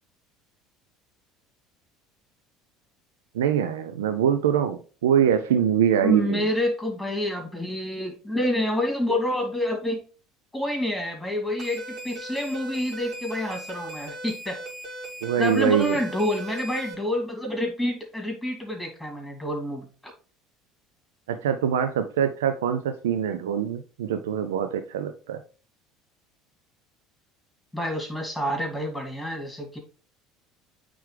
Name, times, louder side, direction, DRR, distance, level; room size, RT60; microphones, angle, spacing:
voice 1, 3.3-6.5 15.2-16.0 21.3-25.4, right 9 dB, 80° right, 9 dB, 0.4 m, -24 dB
voice 2, 6.0-10.0 10.5-14.6 15.4-20.1 27.7-29.8, left 1 dB, 5° left, 1 dB, 2.7 m, -28 dB
sound 1, 11.6-16.9, right 1 dB, 55° right, 2.6 m, -38 dB
8.6 x 3.4 x 3.3 m, 0.39 s
hypercardioid pair, 70°, 0 cm